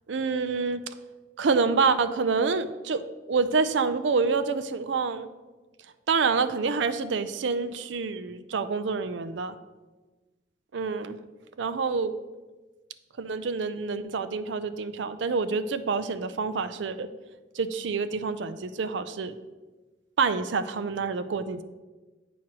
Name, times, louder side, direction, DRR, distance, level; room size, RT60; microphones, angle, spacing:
voice 1, 0.1-0.8 1.4-3.0 3.3-5.3 6.1-9.6 10.7-11.2 11.6-12.1 13.2-17.1 17.5-19.3 20.2-21.6, right 4 dB, 70° right, 12 dB, 0.4 m, -27 dB
8.7 x 3.1 x 6.0 m, 1.2 s
head